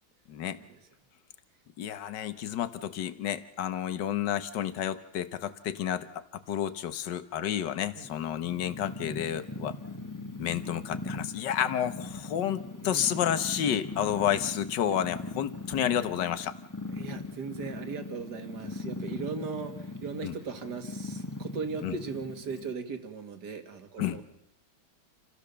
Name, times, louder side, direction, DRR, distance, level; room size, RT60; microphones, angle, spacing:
voice 1, 0.3-0.6 1.8-9.8 10.4-16.5 20.2-20.3 21.8-21.9 24.0-24.2, left 10 dB, 65° left, 11 dB, 1.7 m, -30 dB
Purr, 8.0-22.7, left 2 dB, 10° left, 1.1 m, -40 dB
voice 2, 17.0-24.2, right 5 dB, 55° right, 8 dB, 2.4 m, -38 dB
28.5 x 16.0 x 6.9 m, 0.85 s
omnidirectional pair, 2.1 m